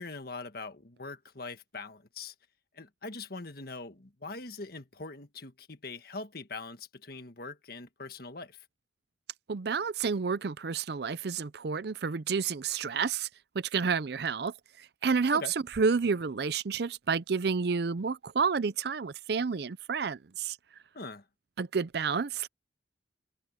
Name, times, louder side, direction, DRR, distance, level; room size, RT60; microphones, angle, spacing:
voice 1, 0.0-2.3 2.7-8.6 15.3-15.5 20.9-21.2, left 3 dB, 55° left, 1.6 m, -42 dB
voice 2, 9.5-13.3 13.5-20.6 21.6-22.5, right 5 dB, 60° right, 0.5 m, -30 dB
open air
head